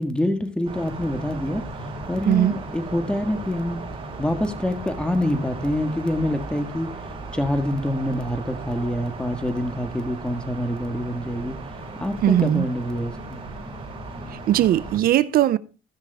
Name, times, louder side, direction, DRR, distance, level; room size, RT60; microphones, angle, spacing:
voice 1, 0.0-1.7 2.1-3.8 4.2-7.0 7.3-11.5 12.0-13.4, left 1 dB, 5° left, 1.6 m, -26 dB
sound 1, 0.7-15.0, right 2 dB, 35° right, 5.2 m, -36 dB
voice 2, 12.2-12.6 14.5-15.6, right 12 dB, 60° right, 0.5 m, -19 dB
17.0 x 6.1 x 3.5 m
cardioid pair, 110°, 17 cm